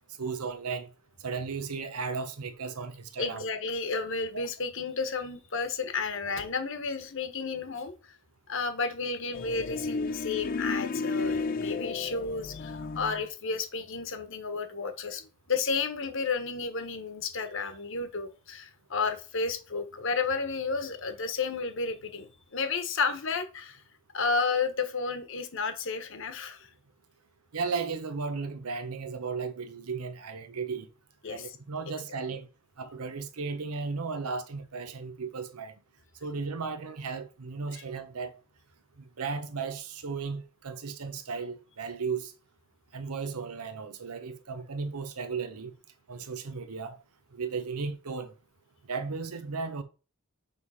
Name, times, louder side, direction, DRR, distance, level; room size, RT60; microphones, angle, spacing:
voice 1, 0.2-0.9 1.2-3.4 4.3-4.4 27.5-30.9 31.3-32.5 32.8-35.7 36.2-38.3 39.2-42.3 42.9-45.7 46.1-46.9 47.3-48.3 48.9-49.8, right 5 dB, 85° right, 0.8 m, -35 dB
voice 2, 3.2-8.2 8.5-23.8 24.1-26.7 31.2-31.6 37.7-37.8, left 4 dB, 60° left, 1.1 m, -32 dB
sound 1, 9.3-13.3, left 4 dB, 40° left, 0.4 m, -33 dB
6.7 x 3.4 x 5.5 m
head